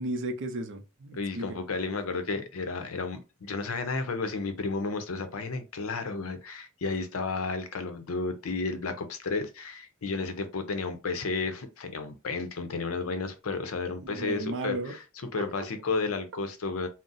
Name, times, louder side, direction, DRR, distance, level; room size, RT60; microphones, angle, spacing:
voice 1, 0.0-1.6 13.9-14.9 15.4-15.7, right 2 dB, 60° right, 0.5 m, -35 dB
voice 2, 1.1-15.0 15.3-16.9, left 4 dB, 75° left, 0.6 m, -32 dB
2.5 x 2.0 x 3.8 m
head